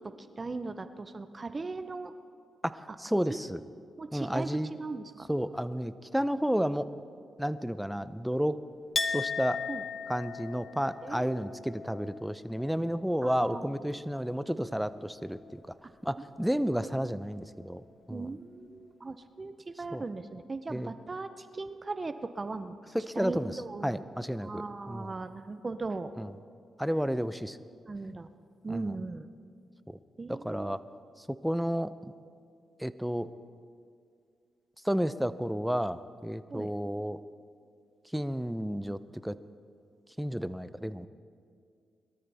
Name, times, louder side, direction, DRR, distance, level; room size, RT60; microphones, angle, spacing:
voice 1, 0.0-2.1 3.3-3.4 4.0-5.3 9.7-9.8 11.0-11.6 13.2-13.8 16.6-16.9 18.1-22.8 23.1-24.1 24.4-26.1 27.9-28.3 28.6-29.3 30.2-30.7 36.5-36.7, right 3 dB, 35° right, 11 dB, 0.7 m, -38 dB
voice 2, 2.6-3.6 4.1-4.7 5.3-6.9 7.4-8.6 9.1-9.6 10.1-15.6 16.0-17.8 18.1-18.3 19.9-20.0 20.7-20.9 22.9-23.6 23.8-25.1 26.2-26.3 26.8-27.6 28.7-28.9 29.9-30.0 30.3-30.8 31.4-31.9 32.8-33.3 34.8-37.2 38.1-39.4 40.2-41.1, equal, 5° right, 14 dB, 0.6 m, -31 dB
Chink clink, 8.9-14.5 14.8-15.6, left 5 dB, 40° left, 1.1 m, -38 dB
21.5 x 13.0 x 3.5 m, 2.3 s
supercardioid pair, 50°, 0 cm